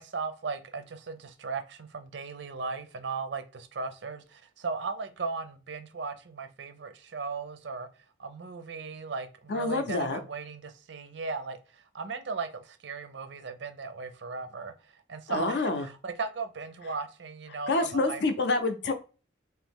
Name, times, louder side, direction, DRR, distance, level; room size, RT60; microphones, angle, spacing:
voice 1, 0.0-7.9 8.2-18.2, right 4 dB, 70° right, 0.5 m, -37 dB
voice 2, 9.5-10.2 15.3-15.9 17.7-18.9, left 3 dB, 60° left, 0.5 m, -27 dB
3.1 x 2.7 x 3.5 m
head